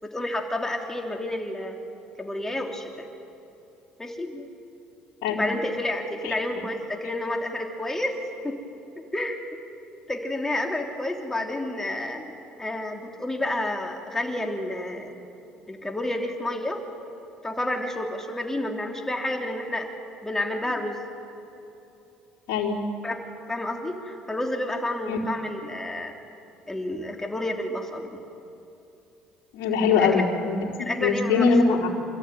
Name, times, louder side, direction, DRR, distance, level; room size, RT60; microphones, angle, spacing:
voice 1, 0.0-1.8 2.2-3.1 4.0-4.5 5.3-8.1 8.4-8.6 9.0-9.4 10.1-15.2 15.7-16.8 17.4-19.9 20.2-21.0 23.0-23.2 23.5-26.1 26.7-28.2 29.9-30.2 30.8-31.8, left 1 dB, 15° left, 2 dB, 3.3 m, -30 dB
voice 2, 29.5-30.6 31.0-31.9, left 5 dB, 75° left, -5 dB, 3.9 m, -22 dB
27.5 x 14.0 x 9.3 m, 2.8 s
supercardioid pair, 80°, 3 cm